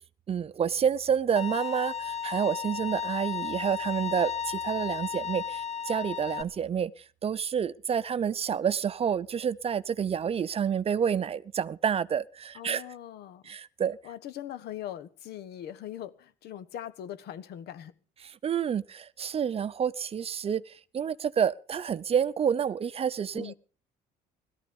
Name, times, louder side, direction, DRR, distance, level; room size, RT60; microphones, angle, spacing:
voice 1, 0.3-12.8 13.5-14.0 18.4-23.5, right 7 dB, 35° right, 0.7 m, -29 dB
Bowed string instrument, 1.4-6.4, left 7 dB, 40° left, 1.2 m, -34 dB
voice 2, 12.5-13.6 14.0-17.9 23.3-23.5, left 11 dB, 75° left, 1.3 m, -41 dB
17.0 x 13.5 x 5.3 m
cardioid pair, 110°, 17 cm